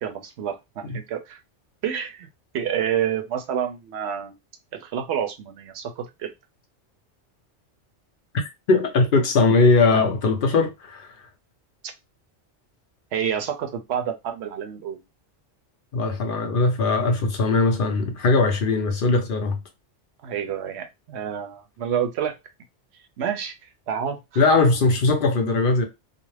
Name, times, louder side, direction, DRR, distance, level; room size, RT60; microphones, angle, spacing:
voice 1, 0.0-1.4 1.8-2.3 2.5-4.3 4.7-6.3 11.8-11.9 13.1-15.0 20.2-22.4 23.2-24.4, right 9 dB, 70° right, 0.8 m, -28 dB
voice 2, 8.7-11.1 15.9-19.6 24.4-25.8, left 3 dB, 55° left, 0.7 m, -20 dB
2.4 x 2.1 x 3.1 m
omnidirectional pair, 1.2 m